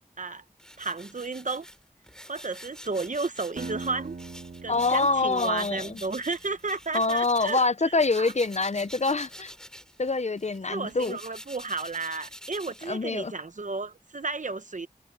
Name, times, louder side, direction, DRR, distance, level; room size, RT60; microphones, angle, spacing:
sound 1, 0.6-7.7 7.9-13.4, equal, 5° left, 3.4 m, -47 dB
voice 1, 0.8-1.7 2.3-4.2 4.6-8.3 10.7-14.9, right 3 dB, 60° right, 1.1 m, -33 dB
Acoustic guitar, 3.6-6.6, right 3 dB, 90° right, 1.3 m, -41 dB
voice 2, 4.7-6.0 6.9-9.5 10.0-11.2 12.9-13.3, left 3 dB, 50° left, 0.8 m, -25 dB
wide cardioid pair, 50°, 15 cm